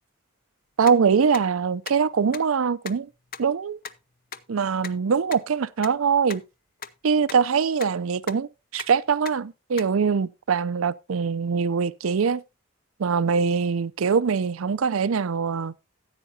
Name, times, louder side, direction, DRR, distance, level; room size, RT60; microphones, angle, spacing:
voice 1, 0.8-3.1 3.4-3.8 4.5-6.4 7.0-12.4 13.0-15.7, right 6 dB, 85° right, 0.5 m, -23 dB
sound 1, 0.9-1.0 1.3-1.4 1.8-1.9 2.3-2.4 2.8-2.9 3.3-3.4 3.8-3.9 4.3-4.4 4.8-4.9 5.3-5.4 5.8-5.9 6.3-6.4 6.8-6.9 7.3-7.4 7.8-7.9 8.3-8.4 8.8-8.9 9.3-9.4 9.8-9.9, left 7 dB, 45° left, 0.7 m, -36 dB
15.0 x 8.2 x 2.8 m
head